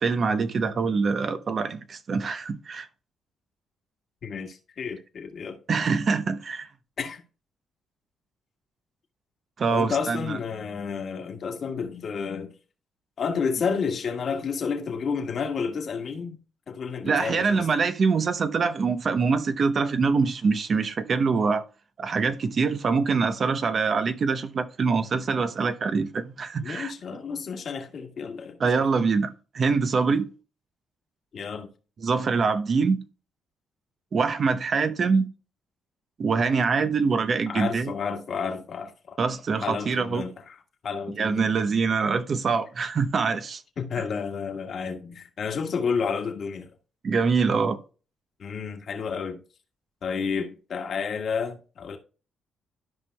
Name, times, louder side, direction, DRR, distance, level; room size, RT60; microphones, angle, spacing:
voice 1, 0.0-2.9 5.7-6.7 9.6-10.4 17.0-21.6 22.0-26.9 28.6-30.2 32.0-33.0 34.1-35.3 36.2-37.9 39.2-40.2 41.2-43.6 47.0-47.8, right 5 dB, 45° right, 0.7 m, -24 dB
voice 2, 4.2-5.6 7.0-7.2 9.7-12.5 13.2-16.4 16.7-17.7 26.6-28.6 31.3-31.7 37.5-39.2 39.6-40.6 40.8-41.5 43.8-46.7 48.4-49.4 50.0-52.0, left 6 dB, 55° left, 1.5 m, -31 dB
13.0 x 5.3 x 2.2 m
cardioid pair, 90°, 0 cm